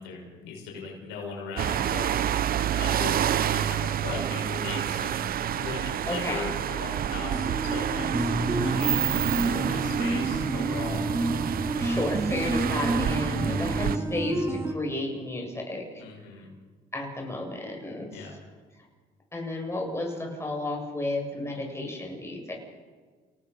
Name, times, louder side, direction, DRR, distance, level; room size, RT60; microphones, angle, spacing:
voice 1, 0.0-2.1 2.7-5.2 5.5-11.0 16.0-16.5 18.1-18.4, left 4 dB, 90° left, 0 dB, 6.3 m, -38 dB
sound 1, 1.6-14.0, right 10 dB, 55° right, 0.8 m, -28 dB
voice 2, 6.1-6.5 11.8-15.8 16.9-18.3 19.3-22.5, left 2 dB, 15° left, 0 dB, 7.5 m, -32 dB
sound 2, 7.3-14.7, right 2 dB, 15° right, 1.6 m, -29 dB
29.5 x 18.5 x 5.7 m, 1.4 s
supercardioid pair, 85°, 18 cm